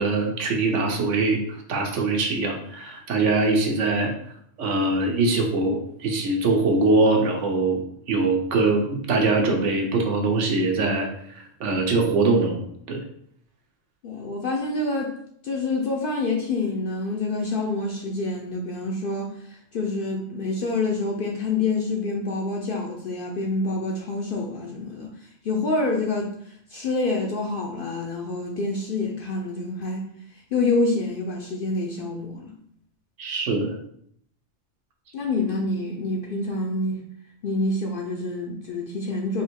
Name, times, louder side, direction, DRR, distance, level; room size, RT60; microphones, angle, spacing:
voice 1, 0.0-4.1 4.6-11.1 11.3-12.6 12.9-13.0 33.2-33.7, right 3 dB, 70° right, 2 dB, 1.0 m, -22 dB
voice 2, 14.0-15.2 15.4-19.3 19.7-25.1 25.4-26.3 26.7-30.1 30.5-32.5 35.1-37.0 37.4-39.4, left 3 dB, 60° left, 0 dB, 0.6 m, -27 dB
3.5 x 2.6 x 4.4 m, 0.67 s
omnidirectional pair, 1.3 m